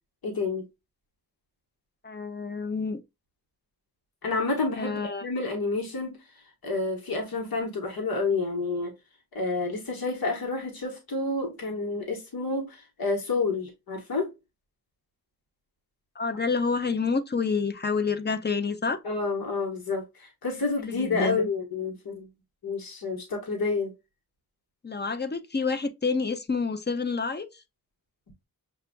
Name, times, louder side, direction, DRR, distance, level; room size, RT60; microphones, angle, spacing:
voice 1, 0.2-0.7 4.2-6.2 6.6-8.9 9.3-14.3 19.0-22.3 22.6-23.9, left 3 dB, 85° left, 1.3 m, -29 dB
voice 2, 2.0-3.0 4.8-5.2 16.2-19.0 20.8-21.4 24.8-27.5, left 4 dB, 30° left, 0.5 m, -28 dB
6.7 x 2.4 x 2.2 m
wide cardioid pair, 120°, 35 cm